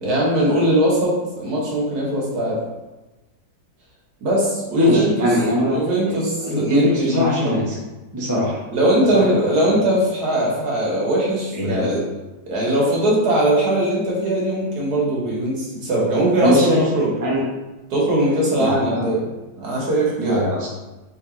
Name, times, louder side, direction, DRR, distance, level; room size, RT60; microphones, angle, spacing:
voice 1, 0.0-2.6 4.2-5.4 5.7-7.6 8.7-12.0 12.5-17.1 17.9-19.3 19.6-20.4, right 1 dB, 65° right, -5 dB, 1.7 m, -20 dB
voice 2, 4.7-5.8 6.0-6.2 6.4-7.8 8.1-8.6 9.1-9.2 11.5-11.9 16.4-16.8 17.2-17.4 18.6-19.0 20.2-20.7, left 1 dB, 15° right, -6 dB, 0.9 m, -21 dB
3.8 x 3.3 x 4.3 m, 1.1 s
omnidirectional pair, 1.8 m